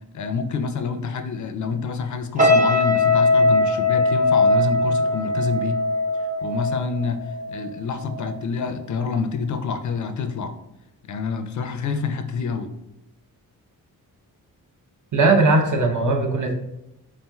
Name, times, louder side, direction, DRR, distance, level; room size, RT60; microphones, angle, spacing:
voice 1, 0.1-5.8 6.4-10.6 11.1-12.7, left 5 dB, 55° left, 7 dB, 0.4 m, -27 dB
sound 1, 2.4-7.7 8.0-8.3, left 2 dB, 20° right, 0.6 m, -20 dB
voice 2, 15.1-16.5, right 3 dB, 55° right, 2 dB, 0.8 m, -18 dB
4.3 x 3.6 x 2.3 m, 0.90 s
cardioid pair, 100°, 37 cm